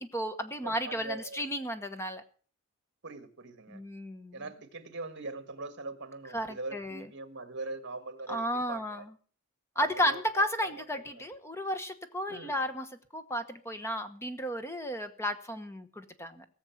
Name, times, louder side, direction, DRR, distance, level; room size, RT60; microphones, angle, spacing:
voice 1, 0.0-2.2 3.7-4.4 6.3-7.1 8.3-9.1 9.8-16.4, equal, 10° left, 9 dB, 1.1 m, -33 dB
voice 2, 0.6-1.5 3.0-3.8 4.3-8.4 8.7-9.0 9.8-10.7 11.1-11.2 12.3-12.6, right 3 dB, 55° right, 10 dB, 1.7 m, -42 dB
17.5 x 7.2 x 7.2 m, 0.43 s
head